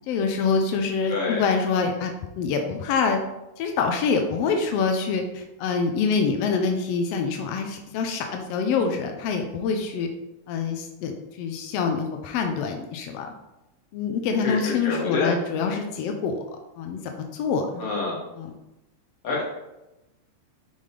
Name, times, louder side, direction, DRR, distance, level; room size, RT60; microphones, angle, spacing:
voice 1, 0.1-3.2 3.6-10.1 10.5-13.3 13.9-16.4 16.8-17.0 17.3-17.8 18.4-18.5, left 5 dB, 85° left, 4 dB, 1.4 m, -25 dB
voice 2, 1.1-1.4 14.4-15.3 17.8-18.2 19.2-19.4, left 4 dB, 50° left, -5 dB, 2.5 m, -27 dB
5.5 x 5.3 x 3.3 m, 0.95 s
omnidirectional pair, 3.5 m